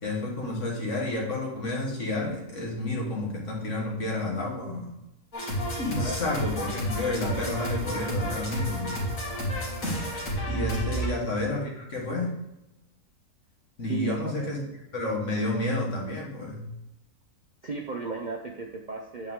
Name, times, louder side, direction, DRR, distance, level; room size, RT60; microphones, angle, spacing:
voice 1, 0.0-4.9 5.8-9.0 10.5-12.4 13.8-14.6 14.9-16.7, left 2 dB, 60° left, -2 dB, 2.0 m, -30 dB
sound 1, 5.3-11.1, equal, 85° left, 2.5 m, -31 dB
voice 2, 13.8-14.5 17.6-19.3, right 5 dB, 50° right, 2 dB, 0.6 m, -34 dB
8.5 x 4.4 x 3.6 m, 0.90 s
omnidirectional pair, 1.4 m